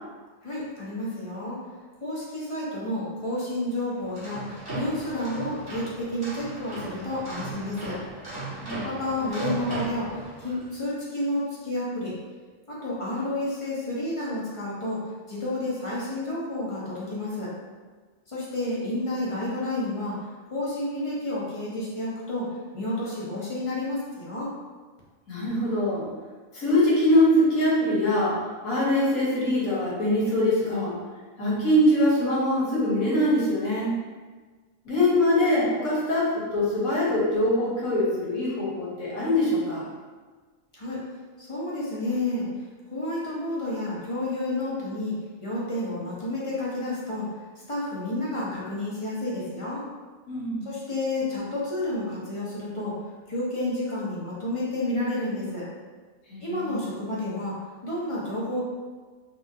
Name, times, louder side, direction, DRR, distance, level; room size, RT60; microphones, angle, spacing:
voice 1, 0.4-1.6 2.0-8.0 8.8-12.1 12.7-15.0 15.3-17.5 18.3-20.2 20.5-22.5 22.7-24.5 40.7-41.0 41.4-42.5 42.9-47.3 47.7-49.8 50.6-52.9 53.3-55.7 56.4-57.6 57.8-58.7, left 1 dB, 30° left, -7 dB, 0.6 m, -30 dB
sound 1, 4.0-10.7, right 2 dB, 20° right, 1.0 m, -37 dB
voice 2, 25.3-26.0 26.5-28.4 28.6-30.9 31.4-33.9 34.8-39.8 50.3-50.6 56.3-56.8, left 1 dB, 75° left, -7 dB, 1.5 m, -23 dB
4.2 x 2.4 x 2.6 m, 1.4 s
omnidirectional pair, 1.5 m